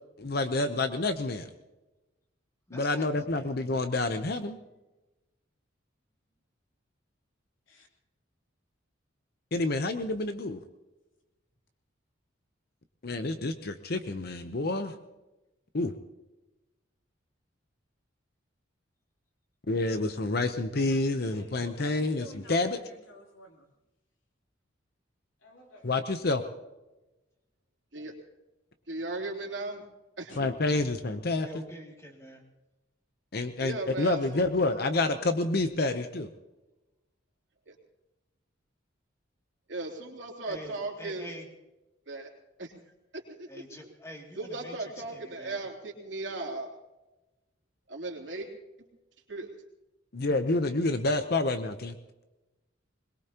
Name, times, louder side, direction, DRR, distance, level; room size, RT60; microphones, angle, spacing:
voice 1, 0.2-1.5 2.7-4.6 9.5-10.6 13.0-14.9 15.7-15.9 19.7-22.8 25.8-26.4 30.4-31.5 33.3-36.3 50.1-51.9, left 2 dB, 55° left, 8 dB, 0.8 m, -28 dB
voice 2, 2.7-3.3 31.4-32.4 40.5-41.5 43.5-45.6, equal, 15° left, 0 dB, 2.6 m, -46 dB
voice 3, 20.7-23.7 25.4-26.2 30.3-30.4, left 1 dB, 80° left, 1 dB, 3.3 m, -52 dB
voice 4, 28.9-29.8 30.2-30.3 33.6-34.5 37.6-37.8 39.7-41.3 42.1-42.3 42.6-42.7 43.1-43.9 44.4-46.8 47.9-48.5 49.3-49.5, right 2 dB, 65° right, 0 dB, 3.2 m, -37 dB
22.0 x 21.5 x 3.0 m, 1.0 s
head